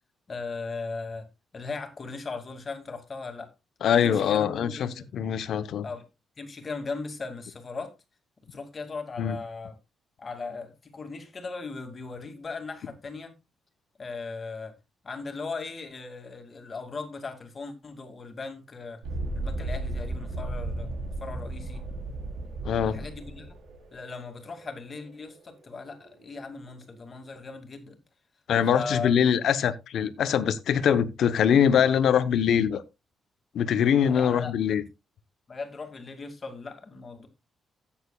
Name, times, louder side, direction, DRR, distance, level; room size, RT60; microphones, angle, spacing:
voice 1, 0.3-1.3 1.5-3.5 3.9-5.1 5.8-6.1 6.4-7.9 8.5-9.8 10.2-13.3 14.0-14.8 15.0-19.0 19.3-20.9 21.2-21.8 22.8-23.5 23.9-28.0 28.7-29.2 34.0-34.8 35.5-37.3, left 4 dB, 35° left, 2.3 m, -38 dB
voice 2, 3.8-5.9 9.2-9.4 22.6-23.0 28.5-32.8 33.5-34.8, left 8 dB, 70° left, 0.8 m, -23 dB
Thunderstorm, 19.0-26.5, right 2 dB, 90° right, 4.2 m, -35 dB
14.5 x 8.8 x 2.3 m
cardioid pair, 135°, 0 cm